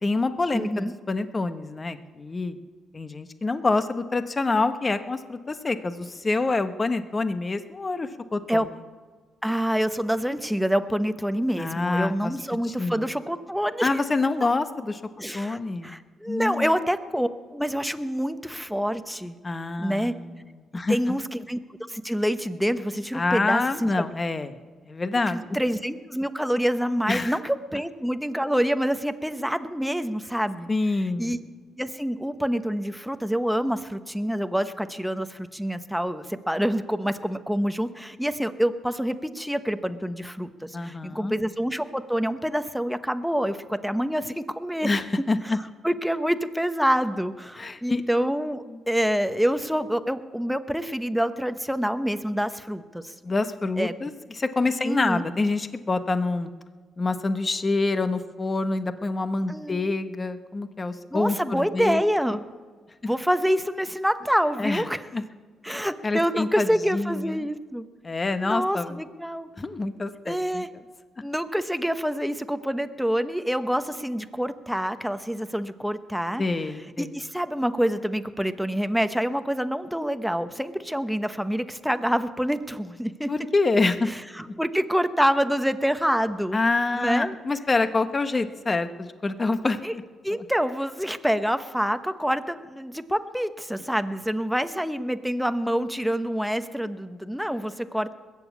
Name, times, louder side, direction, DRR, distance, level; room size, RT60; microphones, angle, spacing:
voice 1, 0.0-2.6 2.9-8.6 11.6-12.3 12.7-13.1 13.8-15.0 15.3-16.0 16.3-16.7 19.4-20.4 20.7-21.2 23.1-24.6 24.9-25.6 27.1-27.4 30.7-31.4 40.7-41.4 44.8-45.6 47.6-48.0 48.7-48.8 53.2-56.5 57.0-62.0 64.6-64.8 65.1-65.2 66.0-67.5 68.0-69.0 69.6-70.6 76.4-77.2 83.3-84.1 86.5-90.0, left 3 dB, 25° left, 10 dB, 1.0 m, -26 dB
voice 2, 0.5-0.9 8.5-8.7 9.4-14.0 15.2-19.4 19.8-20.1 20.9-21.6 21.9-24.0 25.3-30.7 31.2-31.4 31.8-44.9 45.4-45.6 45.8-53.1 53.8-53.9 54.8-55.2 59.5-60.0 61.1-62.5 63.1-65.1 65.6-67.8 68.4-69.5 70.2-70.7 71.2-76.4 77.0-83.3 84.1-86.6 86.9-87.3 89.8-89.9 90.2-98.1, equal, ahead, 10 dB, 0.9 m, -27 dB
21.0 x 7.2 x 8.4 m, 1.5 s
cardioid pair, 90°, 0 cm